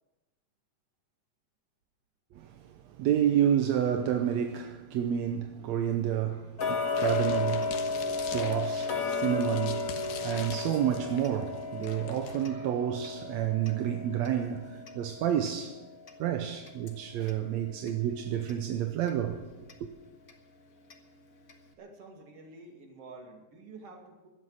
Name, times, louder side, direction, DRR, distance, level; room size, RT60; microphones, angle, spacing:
voice 1, 2.3-15.8 16.2-19.4 19.8-19.9, right 10 dB, 70° right, 1.9 m, -30 dB
Tick-tock, 6.6-17.4 17.8-17.9 18.5-18.6 19.1-19.2 19.7-19.8 20.3-20.4 20.9-21.0 21.5-21.6, left 4 dB, 45° left, 1.2 m, -34 dB
sound 1, 7.0-12.4, left 7 dB, 85° left, 2.9 m, -44 dB
voice 2, 21.8-24.3, right 3 dB, 50° right, 3.2 m, -49 dB
17.0 x 12.5 x 6.5 m
omnidirectional pair, 3.6 m